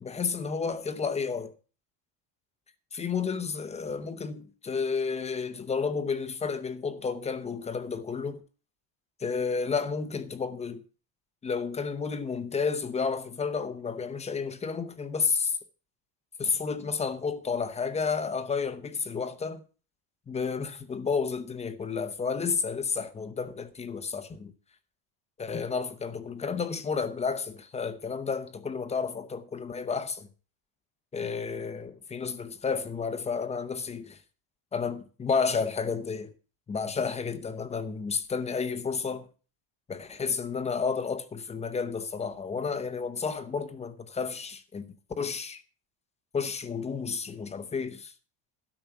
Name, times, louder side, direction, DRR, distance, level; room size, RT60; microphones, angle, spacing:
voice 1, 0.0-1.5 2.9-8.4 9.2-10.8 11.4-15.6 16.4-19.6 20.3-24.5 25.4-30.3 31.1-34.2 34.7-36.3 36.7-39.3 39.9-44.9 45.2-45.6 46.3-48.1, left 5 dB, 15° left, 0.7 m, -31 dB
12.5 x 6.0 x 6.9 m
cardioid pair, 165°, 50 cm